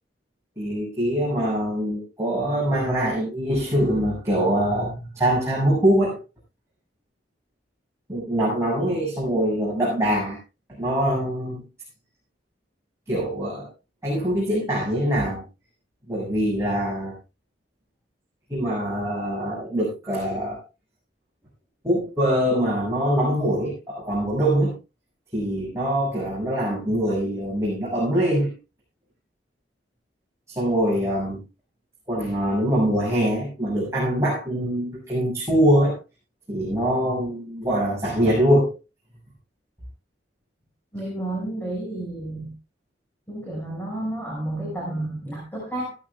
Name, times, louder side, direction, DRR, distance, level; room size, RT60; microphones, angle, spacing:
voice 1, 0.6-6.2 8.1-10.4 10.7-11.6 13.1-13.7 14.0-15.4 16.1-17.1 18.5-20.6 21.8-24.7 25.3-28.6 30.5-31.4 32.1-36.0 36.5-38.7, equal, 15° right, -6 dB, 6.7 m, -23 dB
voice 2, 40.9-42.5 43.3-46.0, right 1 dB, 10° left, -3 dB, 6.3 m, -31 dB
17.5 x 14.0 x 2.4 m, 0.28 s
head